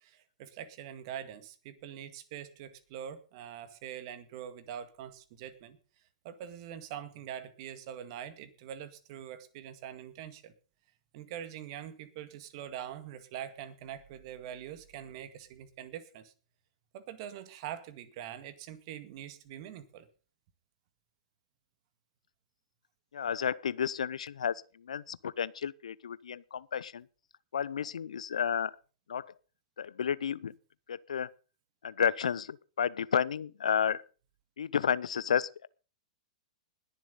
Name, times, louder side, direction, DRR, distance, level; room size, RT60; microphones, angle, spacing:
voice 1, 0.0-5.8 6.2-10.5 11.1-16.3 16.9-20.1, right 10 dB, 50° right, 1.9 m, -44 dB
voice 2, 23.1-27.0 27.5-28.7 29.1-29.3 29.8-30.5 30.9-31.3 31.8-34.0 34.6-35.7, left 8 dB, 80° left, 0.6 m, -32 dB
20.0 x 7.2 x 5.3 m
hypercardioid pair, 110°, 4 cm